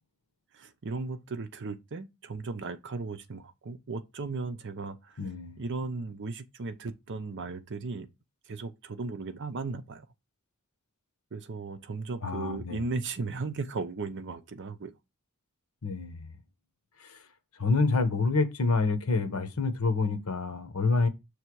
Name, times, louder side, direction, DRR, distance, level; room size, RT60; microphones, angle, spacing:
voice 1, 0.5-5.2 5.6-8.1 8.5-10.1 11.3-14.9, right 3 dB, 55° right, 0.7 m, -36 dB
voice 2, 5.2-5.6 12.2-12.8 15.8-16.3 17.0-17.2 17.6-21.1, left 3 dB, 75° left, 1.0 m, -27 dB
6.6 x 3.3 x 4.6 m
head